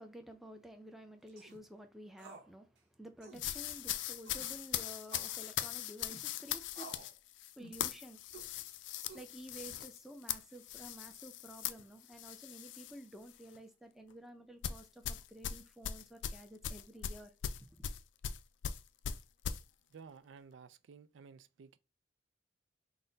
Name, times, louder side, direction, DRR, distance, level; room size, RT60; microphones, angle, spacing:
voice 1, 0.0-6.9 7.6-8.2 8.9-17.3 17.6-17.8, right 1 dB, ahead, 0.5 m, -52 dB
sound 1, 1.3-1.6 2.2-2.5 2.8-2.9 3.2-3.5 4.2-4.5 5.1-5.4 6.0-6.3 6.7-7.1 7.6-7.8 8.3-8.5 9.1-9.6, right 3 dB, 65° right, 1.0 m, -53 dB
sound 2, 3.4-13.0 13.3-13.6 14.6-19.6, left 10 dB, 70° left, 0.3 m, -40 dB
voice 2, 19.9-21.8, right 5 dB, 80° right, 0.4 m, -54 dB
4.0 x 2.1 x 3.9 m
head